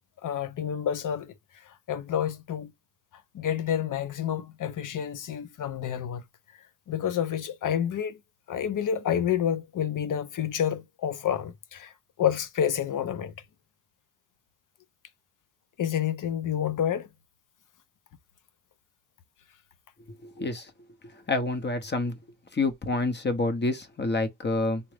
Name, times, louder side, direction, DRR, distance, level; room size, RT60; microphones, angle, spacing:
voice 1, 0.2-1.3 1.6-2.7 3.3-6.2 6.9-8.2 8.5-11.9 12.2-13.3 15.8-17.1, left 9 dB, 45° left, 0.7 m, -29 dB
voice 2, 20.2-20.7 21.1-22.2 22.5-24.8, left 2 dB, 25° left, 0.9 m, -28 dB
3.7 x 2.2 x 3.2 m
supercardioid pair, 80°, 45 cm